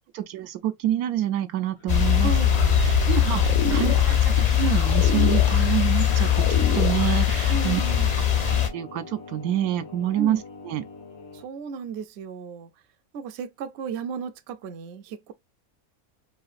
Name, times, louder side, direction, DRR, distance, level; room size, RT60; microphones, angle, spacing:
voice 1, 0.1-2.3 2.8-3.4 3.7-7.8 8.5-10.4 10.6-10.8, right 12 dB, 85° right, 1.1 m, -27 dB
Singing, 1.7-11.5, left 5 dB, 85° left, 1.6 m, -43 dB
sound 1, 1.9-8.7, left 9 dB, 45° left, 0.5 m, -21 dB
sound 2, 2.5-7.5, left 9 dB, 70° left, 1.0 m, -29 dB
voice 2, 3.1-4.0 7.5-8.1 10.2-10.4 11.3-12.7 13.1-15.3, right 5 dB, 60° right, 0.7 m, -34 dB
4.8 x 2.4 x 2.4 m
omnidirectional pair, 1.5 m